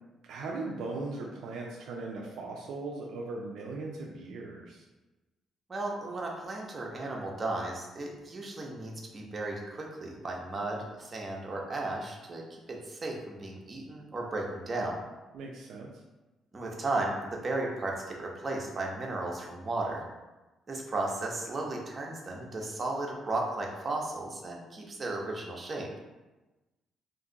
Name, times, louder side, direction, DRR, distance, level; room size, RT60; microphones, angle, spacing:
voice 1, 0.3-4.8 15.3-15.9, right 3 dB, 80° right, -1 dB, 0.4 m, -38 dB
voice 2, 5.7-15.0 16.5-20.0 20.7-25.9, right 2 dB, 35° right, -1 dB, 0.7 m, -35 dB
2.6 x 2.2 x 3.9 m, 1.1 s
cardioid pair, 75°, 0 cm